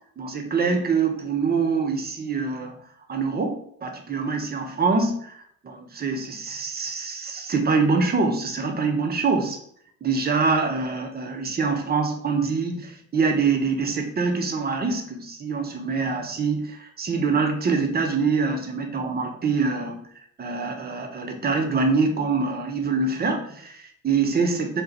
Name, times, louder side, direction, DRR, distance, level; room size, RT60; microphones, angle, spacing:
voice 1, 0.2-2.8 3.1-9.6 10.0-20.0 20.4-24.8, right 4 dB, 20° right, 3 dB, 0.6 m, -25 dB
2.5 x 2.2 x 3.3 m, 0.65 s
hypercardioid pair, 45°, 44 cm